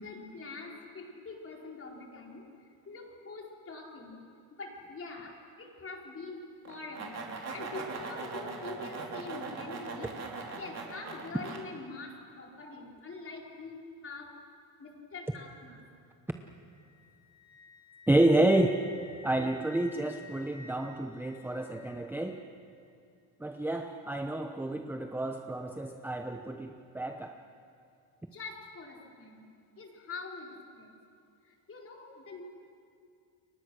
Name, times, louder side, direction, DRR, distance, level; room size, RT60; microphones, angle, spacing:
voice 1, 0.0-2.4 2.9-4.2 4.5-10.1 10.5-14.3 14.8-15.8 28.3-29.4 29.8-30.9 31.4-32.4, left 3 dB, 30° left, -1 dB, 4.5 m, -44 dB
sound 1, 6.7-11.6, right 4 dB, 40° right, 3.7 m, -40 dB
Wind instrument woodwind instrument, 16.4-22.4, left 3 dB, 10° left, 5.6 m, -54 dB
voice 2, 18.1-18.8 19.2-22.4 23.4-27.4, right 1 dB, 5° right, 5 dB, 0.8 m, -29 dB
29.5 x 23.0 x 6.3 m, 2.4 s
cardioid pair, 135°, 42 cm